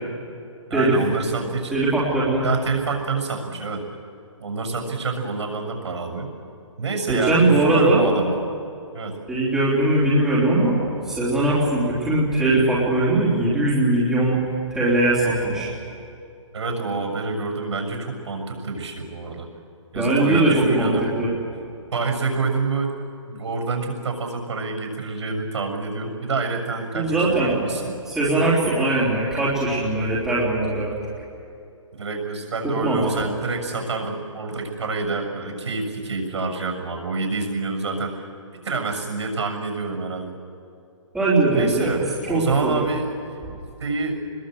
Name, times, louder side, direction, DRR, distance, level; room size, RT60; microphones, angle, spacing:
voice 1, 0.7-1.8 2.4-3.8 4.4-6.3 6.8-8.4 8.9-9.2 16.5-19.5 19.9-21.1 21.9-22.9 23.2-27.9 28.4-28.7 31.9-38.3 38.6-40.3 41.5-44.2, right 3 dB, 60° right, 3 dB, 6.6 m, -27 dB
voice 2, 1.7-2.4 7.1-8.0 9.3-10.7 11.0-14.4 14.7-15.7 19.9-21.3 26.9-27.5 28.1-30.9 32.8-33.2 41.1-42.0 42.3-42.7, right 2 dB, 5° right, -10 dB, 3.4 m, -20 dB
25.5 x 21.5 x 7.9 m, 2.5 s
hypercardioid pair, 170°, 16 cm